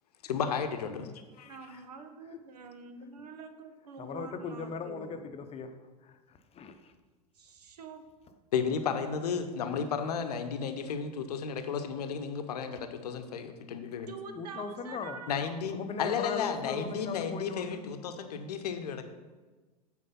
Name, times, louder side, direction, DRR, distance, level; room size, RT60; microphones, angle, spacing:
voice 1, 0.2-1.1 1.4-1.6 8.5-14.1 15.3-19.0, left 6 dB, 70° left, 7 dB, 0.9 m, -33 dB
voice 2, 1.4-5.3 7.3-8.1 14.1-15.6, right 4 dB, 70° right, 7 dB, 0.9 m, -46 dB
voice 3, 4.0-5.7 6.0-6.9 14.4-15.2 15.7-17.8 18.2-18.3, left 5 dB, 30° left, 8 dB, 0.8 m, -39 dB
8.4 x 4.6 x 5.7 m, 1.3 s
figure-of-eight pair, 85°, 21 cm